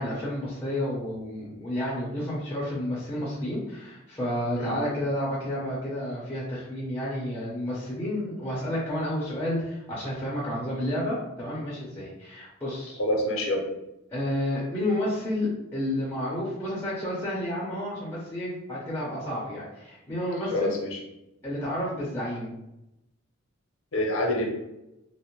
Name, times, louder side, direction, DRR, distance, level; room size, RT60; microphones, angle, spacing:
voice 1, 0.0-13.0 14.1-20.8 21.4-22.5, left 1 dB, 10° left, -7 dB, 0.6 m, -31 dB
voice 2, 13.0-13.6 20.5-21.0 23.9-24.5, left 1 dB, 80° left, 1 dB, 0.6 m, -26 dB
2.5 x 2.1 x 2.9 m, 0.90 s
head